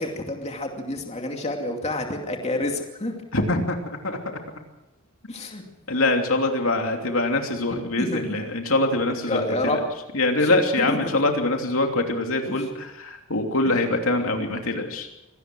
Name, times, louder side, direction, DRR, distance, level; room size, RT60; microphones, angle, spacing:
voice 1, 0.0-3.1 5.3-5.6 7.7-8.4 9.3-9.8 10.4-10.5 10.9-11.0 12.4-12.6, left 1 dB, 30° left, 2 dB, 2.6 m, -28 dB
voice 2, 3.3-4.4 5.9-9.8 10.1-15.1, left 2 dB, 75° left, 3 dB, 3.0 m, -24 dB
25.0 x 18.5 x 6.3 m, 0.94 s
head